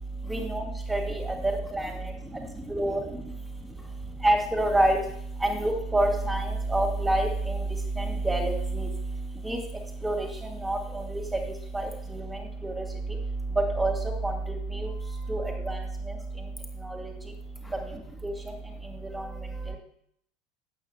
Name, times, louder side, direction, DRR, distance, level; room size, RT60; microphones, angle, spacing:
voice 1, 0.3-0.6 0.9-1.9 2.7-3.0 4.2-5.0 5.4-7.6 8.0-8.9 9.4-9.6 10.0-10.3 10.6-11.2 11.7-12.2 12.6-12.7 13.7-13.9 14.2-14.9 15.3-15.8 16.9-17.1 18.2-18.3 19.1-19.2, right 1 dB, 10° right, -2 dB, 2.9 m, -27 dB
voice 2, 2.0-2.7 3.8-3.9 14.9-15.5 17.6-17.7 19.1-19.8, right 1 dB, 10° left, 3 dB, 2.6 m, -52 dB
9.1 x 7.6 x 7.4 m, 0.67 s
figure-of-eight pair, 75°, 0 cm